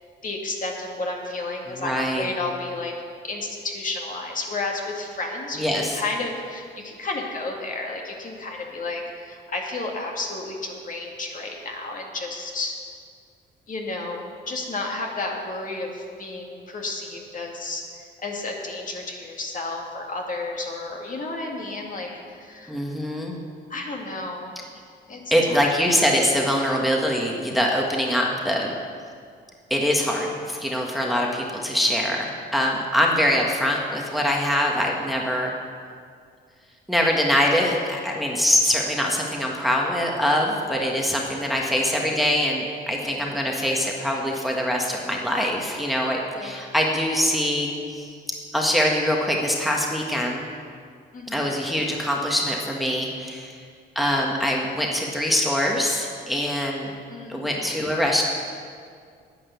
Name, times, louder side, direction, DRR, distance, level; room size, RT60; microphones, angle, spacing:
voice 1, 0.2-2.9 3.2-12.7 13.7-22.8 23.7-24.5 25.1-25.2 25.5-25.7 43.0-43.3 46.3-46.6 51.1-51.4 57.1-57.7, left 2 dB, 40° left, 0 dB, 2.0 m, -32 dB
voice 2, 1.8-2.3 5.5-6.0 22.7-23.4 25.3-28.7 29.7-35.5 36.9-48.1 48.5-50.4 51.3-53.6 53.9-56.9 57.3-58.2, equal, ahead, -1 dB, 1.5 m, -23 dB
10.0 x 9.1 x 7.0 m, 2.2 s
cardioid pair, 90°, 20 cm